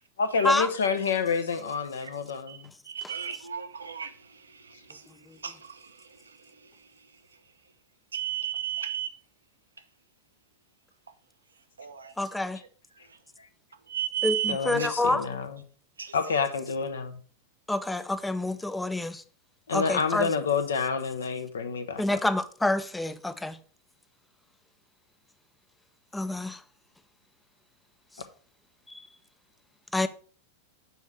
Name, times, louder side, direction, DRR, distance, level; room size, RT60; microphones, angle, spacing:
voice 1, 0.2-2.7 14.5-15.6 16.1-17.2 19.7-22.2, left 5 dB, 65° left, 0.8 m, -28 dB
voice 2, 2.9-4.1 4.9-5.0 5.4-5.8 8.1-9.1 11.8-12.1 13.9-14.5 14.8-14.9 16.0-16.1, right 9 dB, 75° right, 0.6 m, -33 dB
voice 3, 12.2-12.6 14.2-15.3 17.7-19.2 19.7-20.3 22.0-23.6 26.1-26.6 28.9-29.1 29.9-30.1, left 2 dB, 5° left, 0.5 m, -28 dB
6.9 x 4.2 x 4.6 m
figure-of-eight pair, 90°, 0 cm